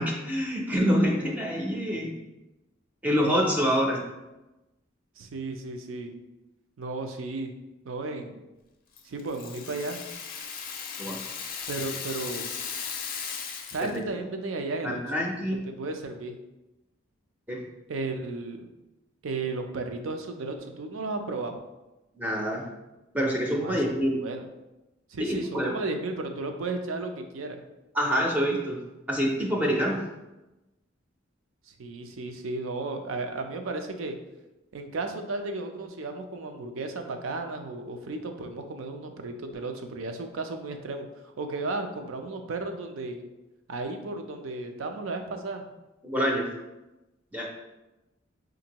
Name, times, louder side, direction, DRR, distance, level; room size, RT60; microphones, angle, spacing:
voice 1, 0.0-2.2 3.0-4.0 11.0-11.2 13.8-13.9 14.8-15.6 17.5-17.6 22.2-22.7 23.1-24.2 25.2-25.7 27.9-28.8 29.1-30.0 46.0-46.5 47.3-47.5, equal, 10° right, -1 dB, 0.4 m, -26 dB
voice 2, 5.2-6.1 6.8-7.6 7.8-8.4 9.0-10.0 11.7-12.5 13.7-15.0 15.5-16.4 17.9-18.7 19.2-21.6 23.6-23.8 24.2-24.5 25.1-27.6 31.8-34.2 34.7-43.2 43.7-45.6, right 3 dB, 85° right, 5 dB, 0.5 m, -34 dB
Rattle (instrument), 9.0-14.0, left 6 dB, 45° left, 0.4 m, -37 dB
5.2 x 2.6 x 2.9 m, 1.0 s
head